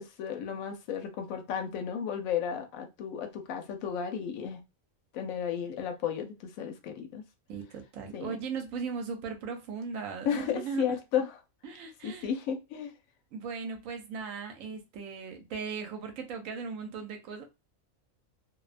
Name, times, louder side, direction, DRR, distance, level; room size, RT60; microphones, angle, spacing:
voice 1, 0.0-4.6 5.1-7.2 8.1-8.4 10.3-11.4 12.0-12.9, left 8 dB, 85° left, 1.0 m, -33 dB
voice 2, 7.5-11.0 11.6-12.3 13.3-17.5, right 5 dB, 80° right, 1.0 m, -38 dB
2.5 x 2.1 x 2.4 m
omnidirectional pair, 1.4 m